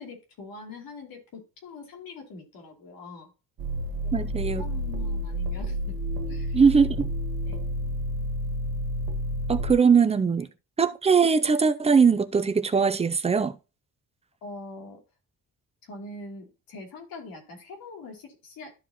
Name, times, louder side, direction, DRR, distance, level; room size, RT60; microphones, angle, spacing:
voice 1, 0.0-3.3 4.0-5.9 6.3-6.6 7.5-7.7 14.4-15.0 15.8-18.7, left 3 dB, 90° left, 2.8 m, -43 dB
sound 1, 3.6-9.7, equal, 70° right, 1.5 m, -30 dB
voice 2, 4.1-4.6 6.5-7.1 9.5-10.5 10.8-13.6, right 5 dB, 20° right, 0.4 m, -21 dB
12.5 x 4.8 x 2.9 m
wide cardioid pair, 170°, 34 cm